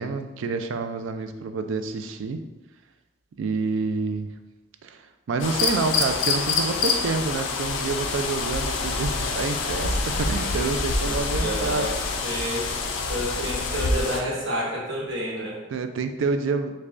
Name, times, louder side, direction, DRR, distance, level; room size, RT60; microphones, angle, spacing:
voice 1, 0.0-2.4 3.4-4.3 4.8-5.0 5.3-11.9 13.2-13.3 15.7-16.7, right 4 dB, 85° right, 8 dB, 0.3 m, -28 dB
sound 1, 5.4-14.2, left 4 dB, 80° left, 0.5 m, -26 dB
voice 2, 11.0-11.9 12.2-12.7 13.1-15.6, equal, 70° right, -4 dB, 1.1 m, -29 dB
6.5 x 2.2 x 2.5 m, 1.1 s
head